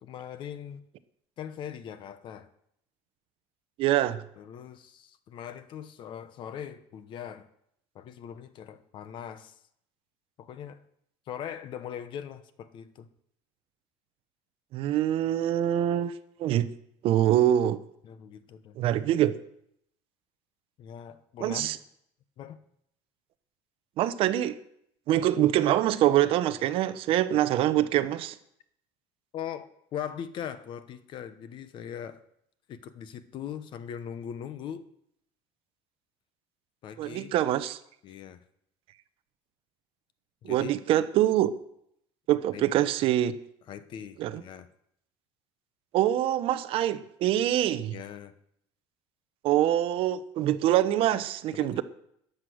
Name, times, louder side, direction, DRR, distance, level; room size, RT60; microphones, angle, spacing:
voice 1, 0.0-0.9 1.4-2.5 4.4-7.5 7.9-9.6 10.4-10.8 11.3-13.1 18.0-18.8 20.8-21.7 22.4-22.6 29.3-32.2 32.7-34.8 36.8-37.3 38.0-38.4 40.4-40.7 42.5-42.6 43.7-44.7 47.9-48.3 51.5-51.8, left 9 dB, 40° left, 1.0 m, -40 dB
voice 2, 3.8-4.2 14.7-16.1 16.4-16.7 17.0-17.8 18.8-19.4 21.4-21.8 24.0-24.6 25.1-28.4 37.0-37.8 40.4-41.5 42.3-43.3 44.2-44.4 45.9-47.9 49.4-51.8, right 12 dB, 45° right, 0.8 m, -24 dB
14.0 x 10.0 x 6.3 m
cardioid pair, 155°, 13 cm